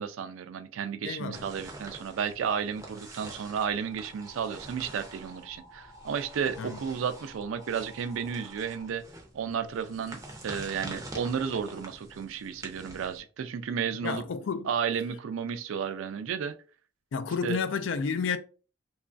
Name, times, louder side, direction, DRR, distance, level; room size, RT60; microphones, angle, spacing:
voice 1, 0.0-9.0 9.3-14.2 14.6-16.5 17.4-17.6, right 7 dB, 75° right, 0.3 m, -33 dB
voice 2, 1.0-1.5 6.6-6.8 14.0-14.7 17.1-18.4, left 5 dB, 65° left, 0.3 m, -31 dB
sound 1, 1.3-13.2, right 1 dB, 15° right, 0.5 m, -46 dB
sound 2, 3.8-8.9, equal, 40° left, 0.8 m, -53 dB
2.9 x 2.4 x 2.4 m
head